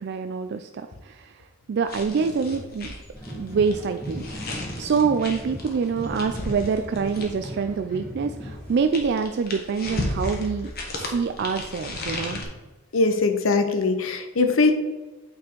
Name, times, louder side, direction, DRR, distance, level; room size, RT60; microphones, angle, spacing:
voice 1, 0.0-2.9 3.3-10.7 11.0-12.4, right 5 dB, 55° right, 8 dB, 0.3 m, -26 dB
sound 1, 1.8-7.6 8.5-12.4, left 1 dB, 50° left, 1.4 m, -34 dB
sound 2, 3.1-8.8, equal, ahead, 2.4 m, -38 dB
voice 2, 12.9-14.7, left 3 dB, 80° left, 6 dB, 0.8 m, -21 dB
8.5 x 4.3 x 4.5 m, 1.2 s
head